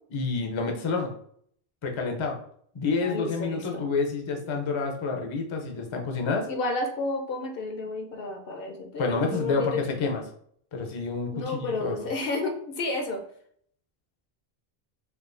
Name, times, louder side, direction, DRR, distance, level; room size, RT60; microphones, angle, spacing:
voice 1, 0.1-1.1 1.8-2.4 2.7-6.5 9.0-10.2 10.7-12.0, left 4 dB, 40° left, 2 dB, 0.5 m, -28 dB
voice 2, 3.0-3.9 4.3-4.4 6.5-10.0 11.3-13.2, left 2 dB, 65° left, 4 dB, 0.8 m, -31 dB
4.5 x 2.3 x 2.5 m, 0.63 s
omnidirectional pair, 1.1 m